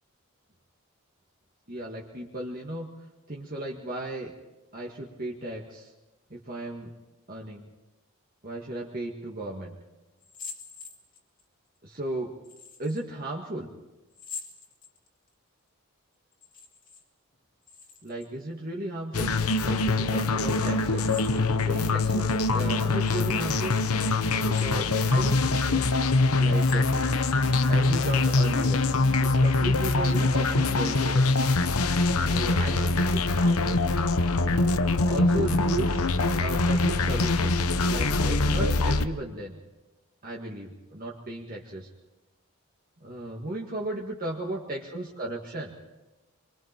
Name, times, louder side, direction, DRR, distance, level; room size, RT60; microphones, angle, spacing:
voice 1, 1.7-2.9 3.3-4.3 4.7-5.9 6.3-6.9 7.3-7.7 8.4-9.7 11.8-12.3 12.8-13.7 18.0-21.1 21.7-23.8 24.4-25.8 26.4-26.9 27.7-28.8 29.2-31.3 32.2-33.8 34.4-36.0 36.4-39.6 40.2-41.9 43.0-45.7, right 1 dB, 40° right, -2 dB, 1.9 m, -35 dB
sound 1, 10.2-11.4 12.4-13.0 14.1-15.3 16.3-17.0 17.3-18.3 19.3-19.9 21.0-21.8 22.3-22.4 23.0-23.5 24.3-25.1 25.6-25.7 26.4-27.4, left 5 dB, 35° left, 2.3 m, -45 dB
sound 2, 19.1-39.1, left 3 dB, 85° left, 1.0 m, -24 dB
26.5 x 23.5 x 4.5 m, 1.1 s
head